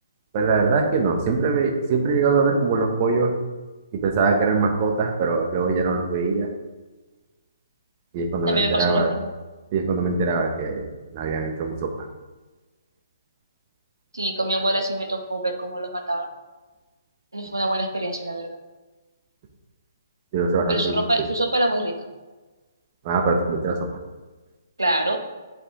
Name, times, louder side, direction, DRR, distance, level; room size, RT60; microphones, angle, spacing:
voice 1, 0.3-3.3 3.9-6.5 8.1-9.1 9.7-10.9 11.1-12.1 20.3-21.3 23.0-23.9, right 4 dB, 30° right, 2 dB, 1.4 m, -22 dB
voice 2, 8.5-9.3 14.1-16.3 17.3-18.6 20.7-21.9 24.8-25.2, right 1 dB, 80° right, 4 dB, 1.6 m, -25 dB
8.1 x 7.7 x 3.8 m, 1.2 s
figure-of-eight pair, 130°, 2 cm